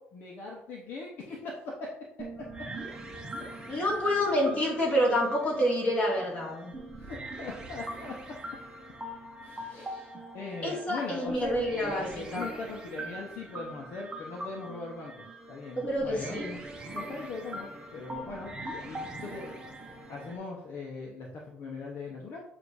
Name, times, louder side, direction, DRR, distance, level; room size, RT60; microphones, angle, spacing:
voice 1, 0.0-1.9 7.0-8.1 9.4-16.5 16.9-18.6 18.9-19.5 20.1-22.4, left 3 dB, 55° left, -1 dB, 0.9 m, -40 dB
sound 1, 2.2-20.4, right 1 dB, 20° right, 0.9 m, -42 dB
voice 2, 3.7-6.7 10.6-12.0 12.3-12.5 15.8-16.6, equal, 30° left, -3 dB, 2.1 m, -28 dB
7.5 x 2.6 x 4.8 m, 0.80 s
cardioid pair, 155°, 4 cm